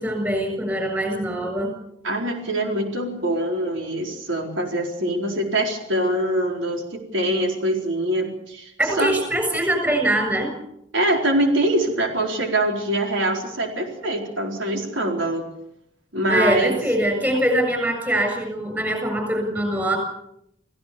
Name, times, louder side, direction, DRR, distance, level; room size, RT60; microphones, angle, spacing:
voice 1, 0.0-1.7 8.8-10.5 16.3-20.0, right 1 dB, 10° right, 4 dB, 7.1 m, -23 dB
voice 2, 2.0-9.1 10.9-15.5 16.1-16.8, right 1 dB, 85° right, 2 dB, 4.4 m, -24 dB
28.0 x 17.0 x 7.0 m, 0.76 s
head